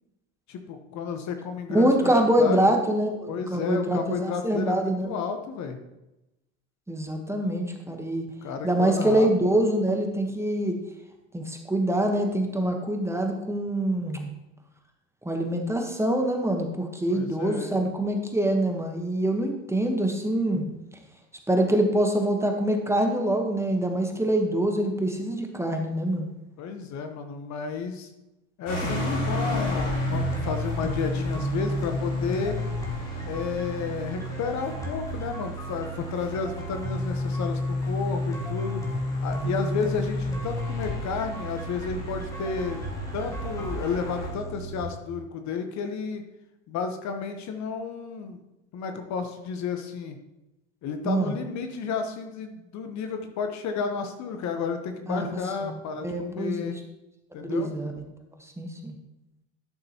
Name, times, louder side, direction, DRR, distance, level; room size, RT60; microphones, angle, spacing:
voice 1, 0.5-2.1 2.4-2.7 3.3-5.8 8.4-9.3 17.1-17.8 26.6-28.1 28.6-32.6 33.2-38.8 39.2-42.8 43.1-46.2 46.7-48.4 48.7-50.2 50.8-56.8 57.3-57.7, left 5 dB, 45° left, 6 dB, 1.1 m, -32 dB
voice 2, 1.7-5.2 6.9-8.2 8.6-10.8 11.3-14.3 15.2-20.6 21.5-26.3 51.0-51.3 55.1-55.3 55.6-55.7 56.0-56.7 57.4-57.9 58.6-58.9, right 1 dB, 5° right, 3 dB, 1.2 m, -25 dB
sound 1, 28.7-44.3, equal, 70° left, 3.2 m, -37 dB
sound 2, 28.8-44.8, left 1 dB, 10° left, 2.0 m, -32 dB
11.5 x 6.6 x 3.0 m, 0.94 s
hypercardioid pair, 80°, 38 cm